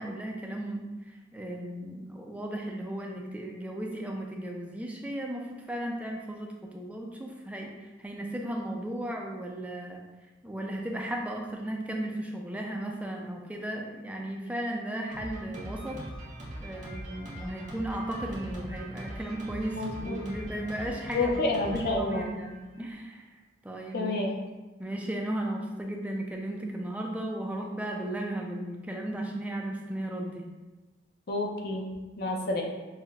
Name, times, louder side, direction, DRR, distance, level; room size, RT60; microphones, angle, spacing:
voice 1, 0.0-10.0 10.4-16.0 16.6-21.4 21.7-23.3 23.6-24.2 24.8-30.5 32.3-32.4, right 1 dB, 5° right, 0 dB, 0.3 m, -35 dB
Drum kit, 15.1-22.9, right 1 dB, 40° right, 0.7 m, -41 dB
voice 2, 19.7-20.2 21.1-22.3 23.9-24.3 31.3-31.9 32.2-32.6, left 2 dB, 55° left, 1 dB, 0.5 m, -29 dB
5.5 x 2.2 x 2.4 m, 1.2 s
head